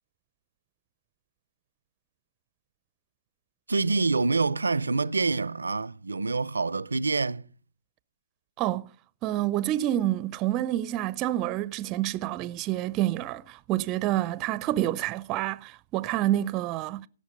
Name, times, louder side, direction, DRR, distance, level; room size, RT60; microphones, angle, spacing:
voice 1, 3.7-7.4, right 3 dB, 85° right, 0.5 m, -26 dB
voice 2, 8.6-8.9 9.2-17.1, right 14 dB, 30° right, 0.5 m, -28 dB
17.0 x 6.3 x 5.3 m
figure-of-eight pair, 125°, 0 cm